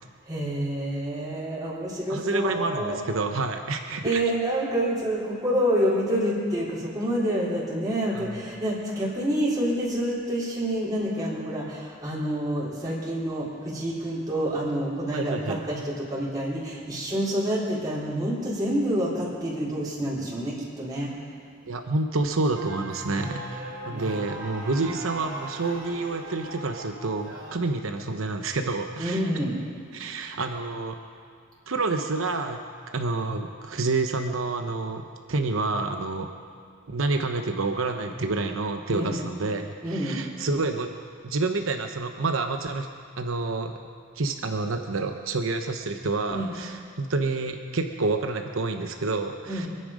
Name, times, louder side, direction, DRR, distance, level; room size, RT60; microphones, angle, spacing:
voice 1, 0.3-3.0 4.0-21.1 23.0-23.4 23.9-24.3 29.0-29.6 38.9-39.1 39.8-40.2 46.3-46.5 49.5-49.7, equal, 20° right, -7 dB, 3.5 m, -28 dB
voice 2, 2.1-4.2 8.1-8.4 15.1-15.6 21.7-29.3 29.9-31.0 31.7-32.6 32.9-35.0 35.3-36.3 36.9-40.9 41.2-42.9 43.2-43.7 44.2-49.7, right 3 dB, 80° right, 5 dB, 0.9 m, -28 dB
sound 1, 22.5-27.6, right 2 dB, 50° right, 3.5 m, -40 dB
26.0 x 9.9 x 5.1 m, 2.2 s
head